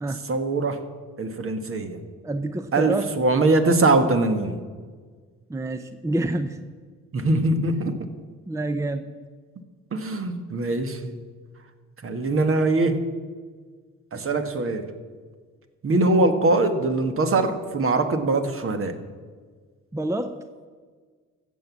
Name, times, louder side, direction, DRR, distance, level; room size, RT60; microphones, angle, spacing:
voice 1, 0.3-0.8 1.2-2.0 2.7-4.6 7.1-7.9 9.9-11.2 12.0-13.0 14.1-14.9 15.8-19.0, right 2 dB, 45° right, 8 dB, 1.5 m, -22 dB
voice 2, 2.2-3.1 5.5-6.7 8.5-9.2 19.9-20.4, right 1 dB, 10° right, 10 dB, 0.6 m, -28 dB
14.5 x 7.5 x 7.2 m, 1.6 s
cardioid pair, 90°, 30 cm